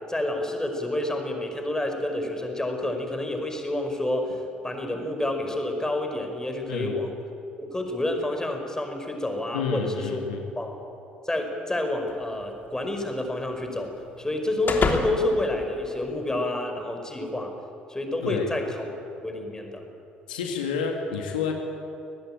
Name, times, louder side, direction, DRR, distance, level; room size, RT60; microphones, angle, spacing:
voice 1, 0.1-7.1 7.6-10.2 10.6-10.8 11.2-17.5 17.9-18.8 19.2-19.8, left 1 dB, 10° left, 4 dB, 5.2 m, -29 dB
voice 2, 9.5-10.4 18.2-18.5 20.3-21.5, left 5 dB, 75° left, 2 dB, 2.2 m, -29 dB
sound 1, 12.1-16.5, left 4 dB, 40° left, 3.1 m, -32 dB
24.0 x 19.0 x 9.0 m, 2.8 s
figure-of-eight pair, 50°, 5 cm